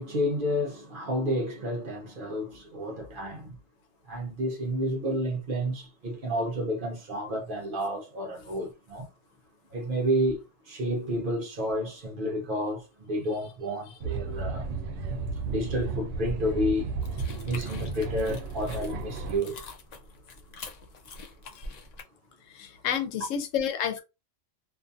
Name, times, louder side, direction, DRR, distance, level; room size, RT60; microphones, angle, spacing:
voice 1, 0.0-3.6 4.1-9.1 9.7-14.7 15.4-16.9 17.4-19.6, equal, 55° right, 0.7 m, -30 dB
sound 1, 14.0-19.4, right 4 dB, 80° right, 0.9 m, -33 dB
sound 2, 17.0-22.0, left 4 dB, 75° left, 0.4 m, -45 dB
voice 2, 22.5-24.0, left 9 dB, 90° left, 1.0 m, -30 dB
2.5 x 2.5 x 2.4 m
omnidirectional pair, 1.3 m